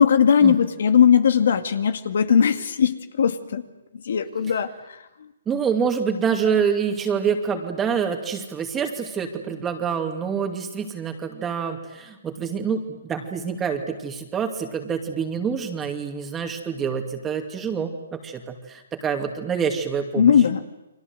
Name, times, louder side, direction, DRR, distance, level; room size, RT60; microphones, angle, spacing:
voice 1, 0.0-3.6 4.1-4.7 20.2-20.6, left 7 dB, 70° left, 10 dB, 2.2 m, -18 dB
voice 2, 5.5-20.3, right 6 dB, 15° right, 4 dB, 2.5 m, -26 dB
30.0 x 23.0 x 8.1 m, 0.97 s
hypercardioid pair, 145°, 0 cm